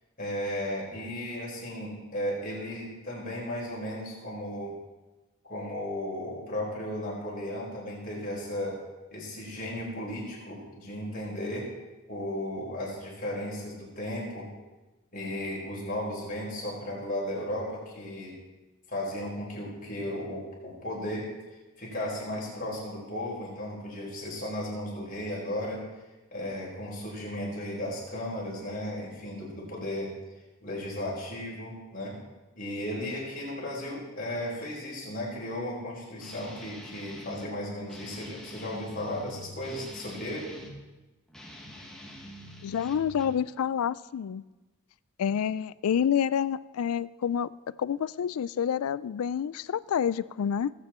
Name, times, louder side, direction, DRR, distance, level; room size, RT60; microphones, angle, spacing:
voice 1, 0.2-4.7 5.4-8.8 9.1-11.7 12.1-14.5 15.1-18.4 18.9-21.3 21.8-25.8 26.3-30.1 30.6-32.2 32.5-40.5, left 1 dB, 40° left, 4.4 m, -35 dB
Guitar, 36.2-37.5 37.9-40.8 41.3-43.5, equal, 5° left, 1.4 m, -46 dB
voice 2, 42.6-44.4 45.2-47.5 47.8-50.7, left 8 dB, 75° left, 0.3 m, -28 dB
18.5 x 8.1 x 4.3 m
head